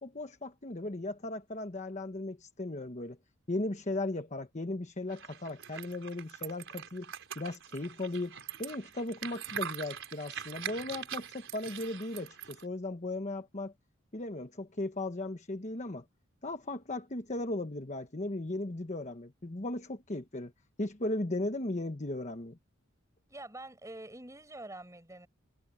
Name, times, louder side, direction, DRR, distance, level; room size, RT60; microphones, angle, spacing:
voice 1, 0.0-3.2 3.5-13.7 14.1-16.0 16.4-20.5 20.8-22.6, left 2 dB, 35° left, 1.2 m, -37 dB
sound 1, 5.1-12.6, right 9 dB, 65° right, 5.1 m, -43 dB
voice 2, 23.3-25.3, right 2 dB, 15° right, 5.2 m, -46 dB
head